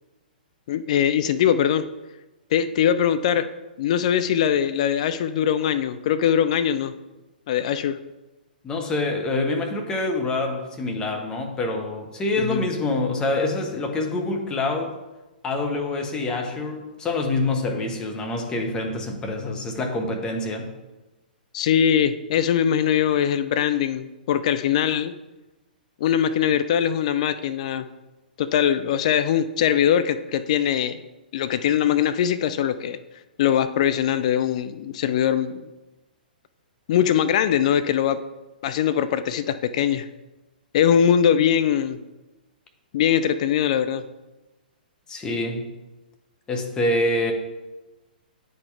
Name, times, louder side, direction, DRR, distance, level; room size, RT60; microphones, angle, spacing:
voice 1, 0.7-1.9 2.5-3.5 3.8-6.9 7.5-8.0 12.4-12.6 21.5-25.1 26.0-27.9 28.4-31.0 31.3-33.0 33.4-35.7 36.9-38.2 38.6-40.1 40.7-42.0 42.9-44.0, left 9 dB, 45° left, 12 dB, 0.3 m, -21 dB
voice 2, 8.6-14.9 15.4-20.7 45.1-45.7 46.5-47.3, left 2 dB, 15° left, 3 dB, 0.9 m, -26 dB
9.6 x 4.3 x 3.3 m, 1.1 s
figure-of-eight pair, 115°, 5 cm